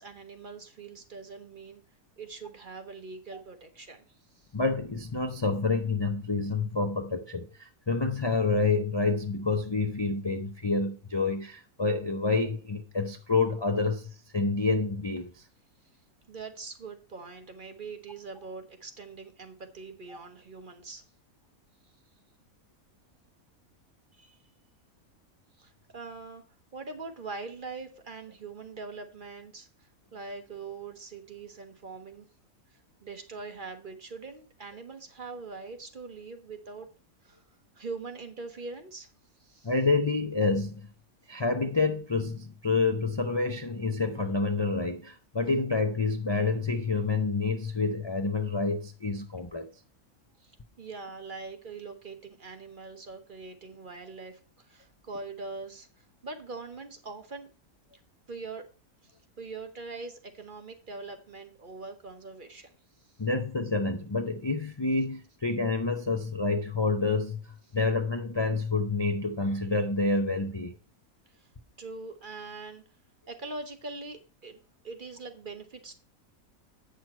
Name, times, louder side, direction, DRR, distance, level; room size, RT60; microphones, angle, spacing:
voice 1, 0.0-1.8 2.2-4.1 4.3-4.5 16.3-21.0 24.1-24.4 25.6-26.4 26.7-29.7 30.1-32.3 33.0-36.9 37.2-37.4 37.8-39.1 39.4-39.7 50.4-57.5 58.3-58.7 59.0-62.7 71.3-71.5 71.8-72.8 73.3-74.6 74.8-76.0, right 4 dB, 40° right, 1.0 m, -42 dB
voice 2, 4.5-15.3 39.6-40.8 41.3-49.7 63.2-70.7, left 3 dB, 35° left, 0.4 m, -28 dB
8.5 x 6.3 x 4.3 m
omnidirectional pair, 1.5 m